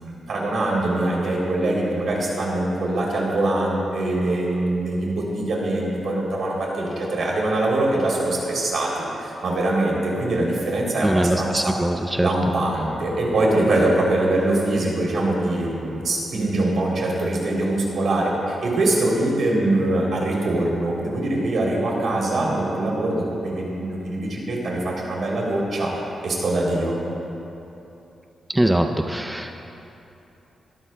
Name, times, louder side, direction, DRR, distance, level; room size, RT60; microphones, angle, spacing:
voice 1, 0.0-11.7 12.2-25.9 26.2-27.0, right 2 dB, 65° right, -3 dB, 3.0 m, -23 dB
voice 2, 11.0-12.3 28.5-29.5, right 1 dB, 5° right, 4 dB, 0.4 m, -22 dB
21.0 x 13.0 x 2.2 m, 2.9 s
wide cardioid pair, 130°, 0 cm